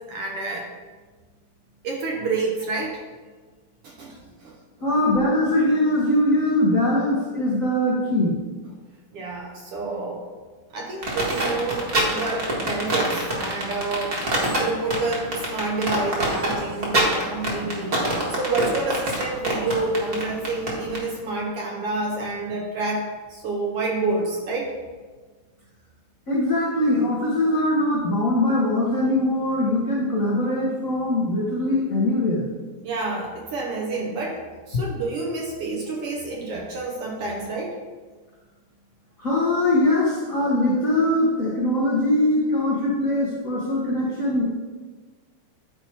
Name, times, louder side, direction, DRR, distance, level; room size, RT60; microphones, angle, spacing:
voice 1, 0.1-0.7 1.8-3.0 3.8-4.1 4.4-4.5 9.1-10.2 10.7-11.8 12.1-14.2 14.6-24.7 32.8-34.4 34.7-37.8, right 3 dB, 65° right, 0 dB, 1.6 m, -28 dB
voice 2, 4.8-8.4 26.3-32.5 34.7-34.8 39.2-44.5, left 1 dB, 75° left, -5 dB, 0.7 m, -22 dB
sound 1, 11.0-21.0, right 2 dB, 35° right, 1.6 m, -25 dB
10.5 x 4.8 x 4.4 m, 1.4 s
omnidirectional pair, 3.5 m